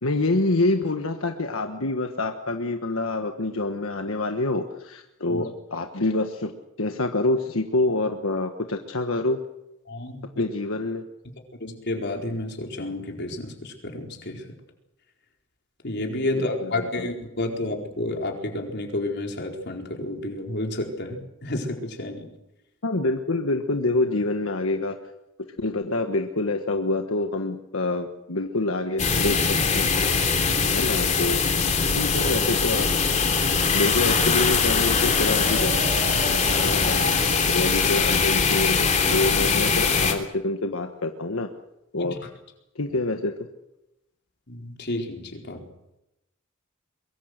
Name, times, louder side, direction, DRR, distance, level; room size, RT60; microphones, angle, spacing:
voice 1, 0.0-6.5 6.8-9.4 10.4-11.0 16.4-17.1 22.8-25.0 25.6-29.9 30.7-31.4 31.9-32.9 33.7-35.8 36.5-37.0 37.5-41.5 41.9-42.2 42.7-43.3, left 2 dB, 85° left, 5 dB, 1.4 m, -26 dB
voice 2, 9.9-10.4 11.6-14.5 15.8-22.3 30.5-30.8 42.0-42.2 44.5-45.7, left 1 dB, 55° left, 2 dB, 4.4 m, -31 dB
sound 1, 29.0-40.1, left 5 dB, 35° left, 3.2 m, -22 dB
Marimba xylophone, 35.1-37.8, right 4 dB, 60° right, 6.9 m, -37 dB
23.5 x 23.0 x 6.7 m, 0.91 s
head